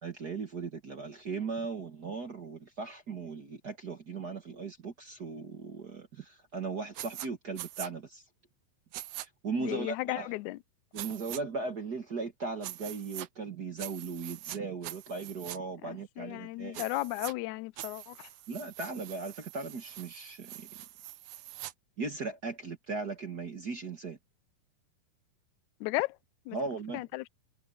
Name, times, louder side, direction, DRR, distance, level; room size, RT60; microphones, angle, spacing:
voice 1, 0.0-8.2 9.2-10.4 10.9-16.8 18.5-20.7 22.0-24.2 26.5-27.0, right 4 dB, 45° right, 1.3 m, -38 dB
sound 1, 7.0-7.3 7.6-7.9 8.9-9.3 11.0-11.4 12.6-13.3 13.8-14.6 14.8-15.6 16.7-17.3 17.8-21.7, right 13 dB, 90° right, 1.4 m, -43 dB
voice 2, 9.6-10.6 15.8-18.3 25.8-26.1 26.5-26.6 26.9-27.3, left 20 dB, 80° left, 1.7 m, -35 dB
omnidirectional pair, 4.0 m